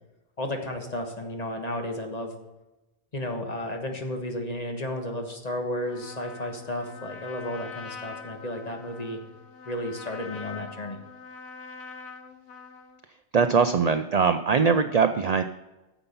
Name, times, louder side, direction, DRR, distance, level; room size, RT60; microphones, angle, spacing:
voice 1, 0.4-2.3 3.1-9.2 9.6-11.0, left 1 dB, 35° left, 3 dB, 1.4 m, -33 dB
Trumpet, 5.8-13.0, left 5 dB, 90° left, 1.3 m, -44 dB
voice 2, 13.3-15.4, right 5 dB, 55° right, 8 dB, 0.4 m, -21 dB
9.9 x 7.1 x 5.4 m, 1.0 s
omnidirectional pair, 1.2 m